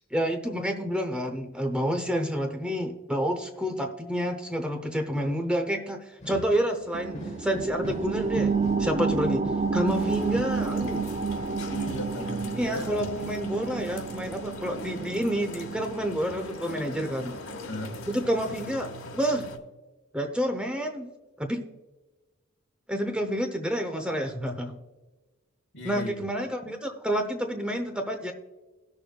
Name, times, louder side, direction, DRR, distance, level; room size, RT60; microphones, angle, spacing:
voice 1, 0.1-8.5 8.8-9.4 9.7-11.1 12.5-17.3 18.1-19.5 20.1-21.1 21.4-21.6 22.9-24.8 25.8-28.3, equal, 5° right, 5 dB, 0.6 m, -29 dB
sound 1, 6.2-14.1, left 1 dB, 35° left, 1.1 m, -43 dB
sound 2, 6.9-18.0 18.4-18.5, right 4 dB, 30° right, 0.3 m, -31 dB
sound 3, 9.9-19.6, left 2 dB, 85° left, 1.2 m, -41 dB
voice 2, 11.7-13.0 17.6-18.0 25.7-26.2, equal, 60° left, 4 dB, 1.5 m, -36 dB
18.0 x 6.9 x 2.2 m, 1.2 s
head